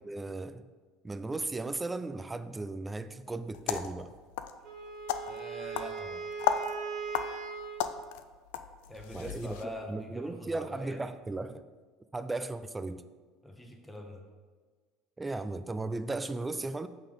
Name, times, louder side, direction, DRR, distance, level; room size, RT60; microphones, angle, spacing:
voice 1, 0.0-0.7 1.0-4.1 9.1-9.6 9.9-11.6 12.1-13.0 15.2-16.9, right 2 dB, 15° right, 0.4 m, -36 dB
sound 1, 3.5-9.7, left 9 dB, 75° left, 0.3 m, -36 dB
Wind instrument woodwind instrument, 4.6-7.9, right 5 dB, 60° right, 1.1 m, -39 dB
voice 2, 5.3-6.2 8.9-11.0 13.4-14.2, equal, 5° left, 1.1 m, -43 dB
5.7 x 3.8 x 5.2 m
hypercardioid pair, 80°, 0 cm